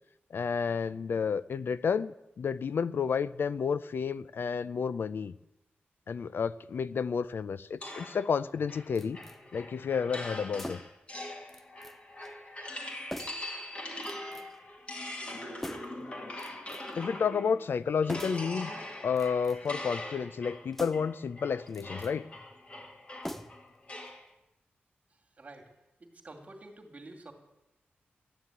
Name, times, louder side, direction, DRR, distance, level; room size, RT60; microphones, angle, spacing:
voice 1, 0.3-5.3 6.1-9.2 9.5-10.8 17.0-18.7 19.0-22.3, left 6 dB, 65° left, 16 dB, 0.4 m, -31 dB
sound 1, 7.8-17.6 18.0-24.2, left 1 dB, 30° left, 2.2 m, -42 dB
sound 2, 9.0-9.4 10.5-11.1 11.5-12.0 12.2-12.4 13.1-13.5 14.0-14.6 15.6-16.0 16.4-17.0 18.1-18.5 19.1-19.8 20.7-21.2 21.7-22.1 23.2-23.8 24.1-24.2, equal, 5° left, 0.6 m, -43 dB
voice 2, 25.1-27.3, right 2 dB, 35° right, 3 dB, 2.4 m, -50 dB
13.0 x 9.7 x 9.0 m, 0.91 s
wide cardioid pair, 155°, 4 cm